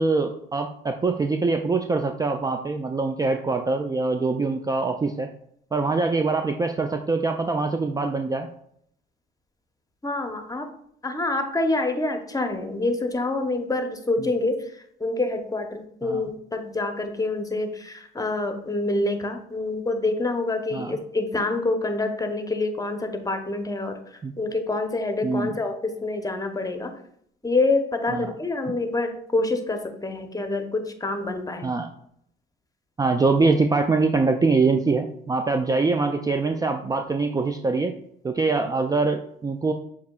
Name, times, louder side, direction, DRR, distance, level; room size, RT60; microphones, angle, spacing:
voice 1, 0.0-5.3 5.7-8.5 14.2-14.3 16.0-16.3 20.7-21.0 24.2-24.3 25.2-25.6 28.1-28.4 28.7-28.8 31.6-31.9 33.0-37.9 38.2-39.7, right 3 dB, 20° right, 5 dB, 0.3 m, -24 dB
voice 2, 10.0-10.7 11.0-14.6 15.0-23.9 24.4-25.7 26.0-26.9 27.4-31.7, left 2 dB, 15° left, 5 dB, 0.8 m, -26 dB
6.9 x 2.8 x 2.3 m, 0.69 s
supercardioid pair, 60°, 21 cm